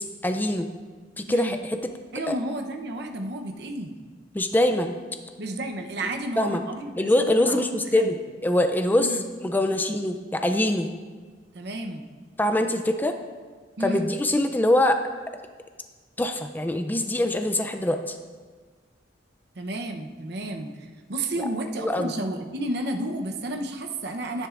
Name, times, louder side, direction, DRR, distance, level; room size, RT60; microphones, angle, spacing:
voice 1, 0.2-0.7 1.2-1.8 2.3-2.4 4.3-4.9 6.4-6.6 7.0-8.2 8.4-10.9 12.4-13.1 13.8-15.0 16.2-18.2 21.8-22.1, left 1 dB, 10° left, 7 dB, 0.4 m, -23 dB
voice 2, 2.1-4.0 5.4-8.2 9.0-9.2 11.5-12.1 13.8-14.1 19.5-24.5, right 1 dB, 60° right, 3 dB, 0.8 m, -32 dB
11.0 x 10.0 x 2.5 m, 1.5 s
head